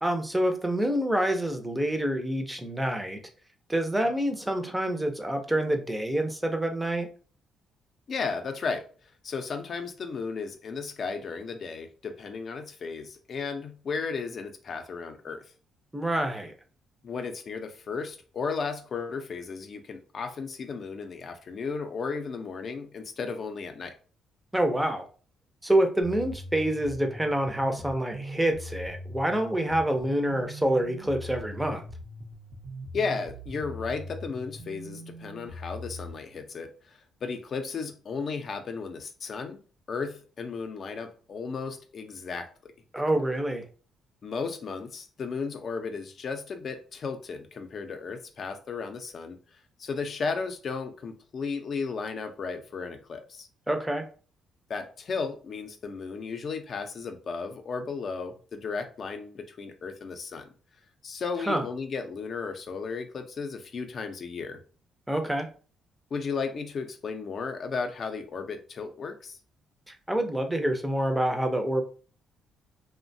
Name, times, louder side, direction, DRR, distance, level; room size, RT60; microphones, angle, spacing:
voice 1, 0.0-3.2 3.7-7.1 15.9-16.6 24.5-25.1 25.6-31.8 42.9-43.7 53.7-54.0 61.5-61.6 65.1-65.5 69.9-71.8, right 1 dB, 10° right, 0.5 m, -27 dB
voice 2, 8.1-8.9 9.2-15.4 17.0-23.9 32.9-39.6 39.9-42.7 44.2-49.4 49.8-53.5 54.7-60.5 61.0-64.6 66.1-69.4, left 5 dB, 50° left, 0.5 m, -34 dB
sound 1, 26.0-36.1, equal, 70° right, 0.6 m, -41 dB
3.0 x 2.1 x 2.6 m
cardioid pair, 90°, 0 cm